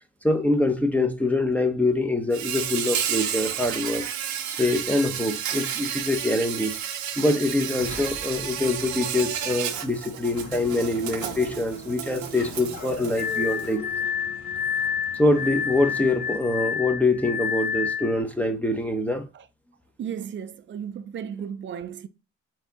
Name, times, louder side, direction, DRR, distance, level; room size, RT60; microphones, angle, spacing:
voice 1, 0.2-4.1 4.5-6.7 7.2-13.9 15.2-19.2, left 2 dB, 5° left, 0.8 m, -24 dB
Insect, 2.3-13.7, right 9 dB, 75° right, 0.8 m, -32 dB
sound 1, 7.8-16.5, left 3 dB, 70° left, 1.4 m, -42 dB
Glass, 13.2-18.2, left 7 dB, 35° left, 0.4 m, -29 dB
voice 2, 20.0-22.1, right 8 dB, 40° right, 0.5 m, -34 dB
4.3 x 2.8 x 3.5 m
cardioid pair, 90°, 30 cm